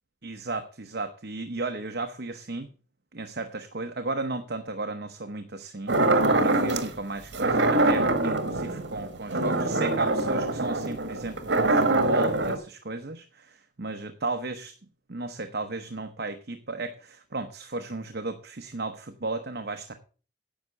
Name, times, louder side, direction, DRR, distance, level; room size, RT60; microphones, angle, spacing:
voice 1, 0.2-2.7 3.1-14.8 15.1-19.9, right 3 dB, 60° right, 7 dB, 0.9 m, -34 dB
sound 1, 5.9-6.9 7.3-12.6, right 2 dB, 75° right, 1.5 m, -24 dB
10.5 x 6.3 x 6.6 m, 0.38 s
head